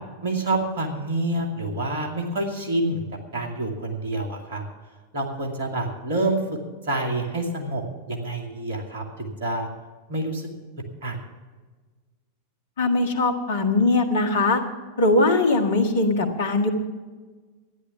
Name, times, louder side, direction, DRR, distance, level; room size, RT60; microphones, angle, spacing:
voice 1, 0.2-3.0 3.3-4.6 5.1-6.4 6.8-9.7 10.1-10.5 11.0-11.2, right 2 dB, 60° right, 2 dB, 2.4 m, -27 dB
voice 2, 12.8-14.6 15.0-16.7, left 2 dB, 60° left, 6 dB, 1.6 m, -21 dB
12.5 x 10.5 x 7.1 m, 1.4 s
figure-of-eight pair, 90°, 0 cm